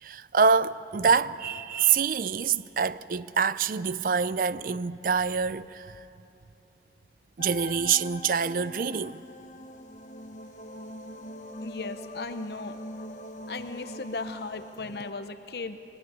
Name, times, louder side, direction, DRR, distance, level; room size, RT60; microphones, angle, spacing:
voice 1, 0.0-5.9 7.4-9.2, right 6 dB, 50° right, 0.4 m, -26 dB
sound 1, 7.4-15.1, left 1 dB, 45° left, 1.0 m, -42 dB
voice 2, 11.6-12.8 13.5-15.8, left 3 dB, 65° left, 0.8 m, -37 dB
23.0 x 19.5 x 9.4 m
head